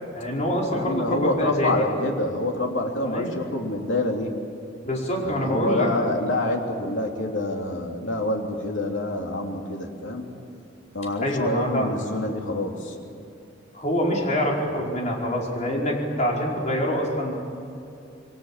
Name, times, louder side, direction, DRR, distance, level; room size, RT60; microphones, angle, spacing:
voice 1, 0.1-1.9 3.0-3.3 4.8-5.9 11.2-11.9 13.7-17.3, equal, 40° left, -2 dB, 4.9 m, -25 dB
voice 2, 0.7-4.3 5.2-10.2 10.9-12.9, left 1 dB, 75° left, 1 dB, 3.2 m, -27 dB
27.5 x 22.0 x 7.5 m, 2.7 s
head